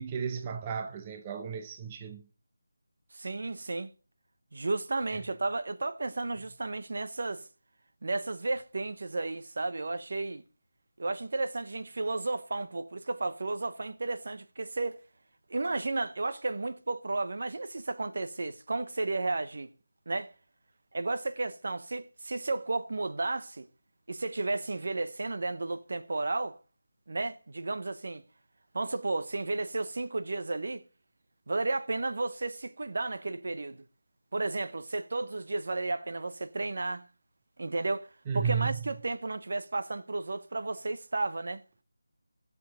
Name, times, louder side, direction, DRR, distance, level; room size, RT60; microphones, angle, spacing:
voice 1, 0.0-2.2 5.1-5.2 38.3-38.9, right 6 dB, 20° right, 0.7 m, -33 dB
voice 2, 3.1-3.9 4.5-7.5 8.0-10.4 11.0-15.0 15.5-19.7 20.1-20.3 20.9-23.7 24.1-26.6 27.1-28.2 28.7-30.8 31.5-33.8 34.3-37.1 37.6-38.1 38.3-41.6, right 2 dB, 60° right, 0.9 m, -33 dB
14.0 x 7.1 x 5.0 m
figure-of-eight pair, 165°, 0 cm